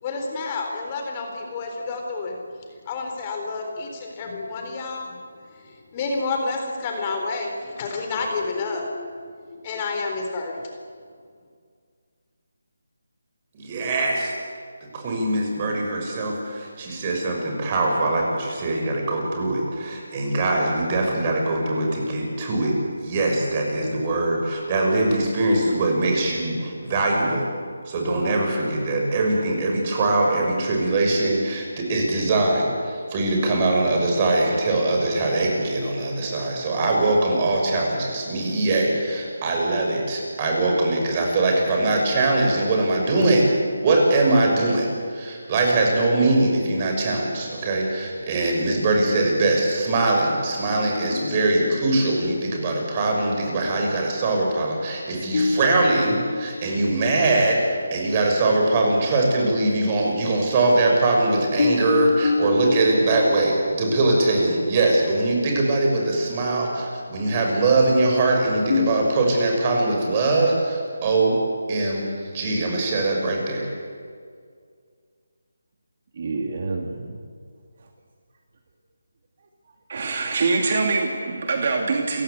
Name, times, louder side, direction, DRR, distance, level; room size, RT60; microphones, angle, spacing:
voice 1, 0.0-2.4 2.9-5.2 5.5-10.7, left 3 dB, 25° left, 2 dB, 3.9 m, -30 dB
voice 2, 13.5-14.3 14.9-27.5 27.8-43.5 43.8-71.4 71.7-73.7, right 2 dB, 30° right, 0 dB, 6.3 m, -22 dB
sound 1, 51.1-53.1 55.3-57.5 57.8-58.0 61.6-64.7 68.7-69.4, left 4 dB, 55° left, 3.2 m, -28 dB
voice 3, 76.2-77.2 79.9-82.2, right 3 dB, 45° right, 3 dB, 2.6 m, -24 dB
29.5 x 16.0 x 8.4 m, 2.1 s
figure-of-eight pair, 160°, 0 cm